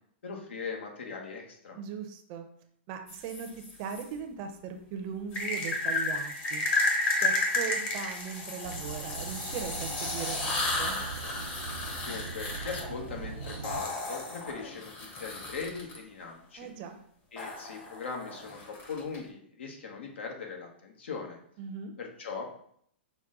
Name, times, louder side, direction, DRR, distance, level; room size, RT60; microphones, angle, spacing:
voice 1, 0.2-1.8 12.0-16.7 17.3-21.4 22.0-22.6, left 5 dB, 80° left, 1 dB, 1.1 m, -40 dB
voice 2, 1.8-2.5 2.9-3.5 3.8-6.7 7.2-11.0 16.6-17.0 21.6-21.9, right 7 dB, 40° right, 6 dB, 0.5 m, -39 dB
sound 1, 3.1-4.0 5.3-16.0 17.4-19.2, left 2 dB, 30° left, 1.0 m, -32 dB
sound 2, 8.6-13.8, right 6 dB, 90° right, 0.4 m, -41 dB
6.0 x 2.2 x 3.7 m, 0.65 s
hypercardioid pair, 135°, 6 cm